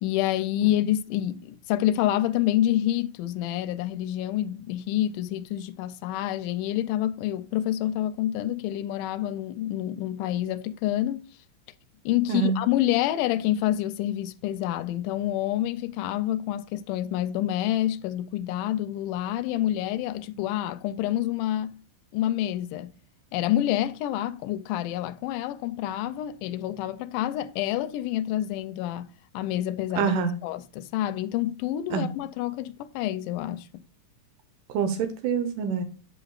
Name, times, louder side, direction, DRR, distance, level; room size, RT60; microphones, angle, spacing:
voice 1, 0.0-11.3 12.1-21.8 22.1-23.0 23.3-30.1 30.4-33.8, left 13 dB, 85° left, 2.1 m, -28 dB
voice 2, 12.3-12.6 30.0-30.4 31.9-32.1 34.7-35.8, right 6 dB, 80° right, 2.5 m, -26 dB
9.0 x 6.3 x 2.3 m
omnidirectional pair, 3.7 m